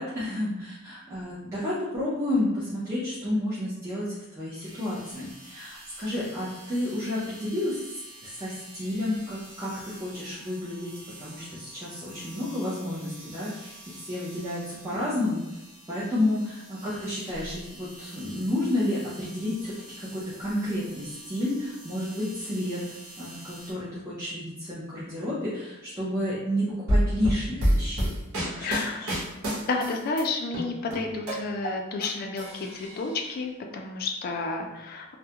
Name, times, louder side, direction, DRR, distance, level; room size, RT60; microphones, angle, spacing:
voice 1, 0.0-7.8 8.2-10.9 11.2-15.6 15.9-22.8 23.2-28.1 28.4-28.7 29.0-29.1, left 1 dB, 15° right, -11 dB, 0.5 m, -31 dB
sound 1, 4.6-23.7, right 1 dB, 40° right, 1.0 m, -48 dB
sound 2, 26.9-30.2 30.5-32.1 32.4-33.2, equal, 85° right, 0.9 m, -27 dB
voice 2, 28.6-29.1 29.6-35.1, left 3 dB, 45° left, 3 dB, 0.3 m, -31 dB
2.3 x 2.1 x 2.8 m, 0.97 s
head